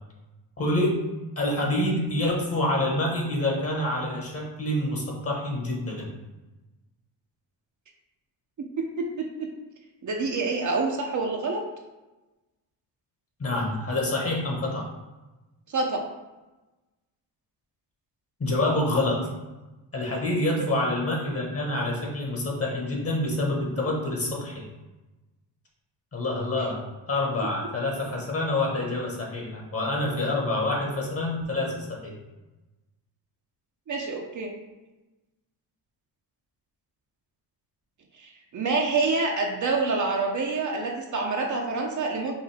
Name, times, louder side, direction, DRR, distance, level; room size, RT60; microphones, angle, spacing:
voice 1, 0.6-1.0 1.4-6.1 13.4-14.9 18.4-19.3 19.9-24.7 26.1-32.1, left 1 dB, 35° left, -1 dB, 1.4 m, -27 dB
voice 2, 9.0-9.5 10.0-11.6 15.7-16.0 33.9-34.5 38.2-42.3, right 3 dB, 45° right, 1 dB, 0.8 m, -27 dB
5.4 x 2.7 x 3.5 m, 1.1 s
cardioid pair, 95°, 43 cm